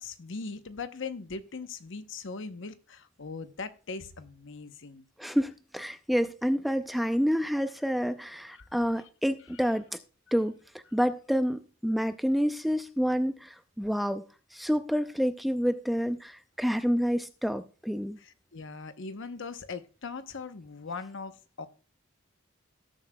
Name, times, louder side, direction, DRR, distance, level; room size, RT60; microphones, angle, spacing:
voice 1, 0.0-5.0 8.5-8.6 18.2-21.7, left 4 dB, 60° left, 0.9 m, -40 dB
voice 2, 5.2-9.8 10.3-10.6 10.9-14.2 14.5-18.2, equal, ahead, 0.4 m, -28 dB
18.5 x 7.4 x 2.2 m
head